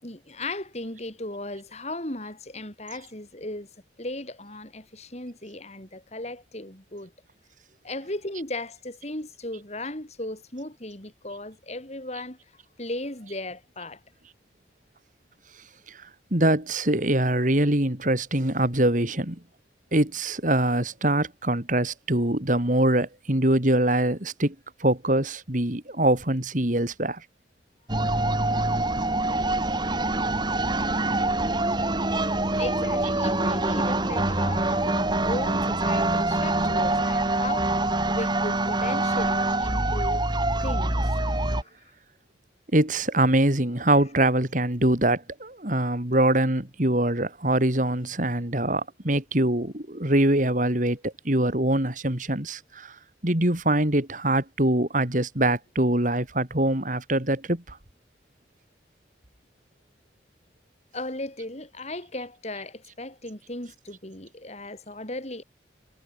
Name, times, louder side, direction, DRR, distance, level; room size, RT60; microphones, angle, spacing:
voice 1, 0.0-3.7 4.0-7.1 7.8-12.4 12.8-14.0 32.6-40.2 40.6-41.0 41.5-41.9 60.9-65.4, left 1 dB, 40° left, 5.0 m, -36 dB
voice 2, 16.3-19.4 19.9-24.6 24.8-27.2 42.7-53.0 53.2-57.8, right 1 dB, 45° right, 3.5 m, -23 dB
sound 1, 27.9-41.6, right 2 dB, 25° right, 2.4 m, -25 dB
head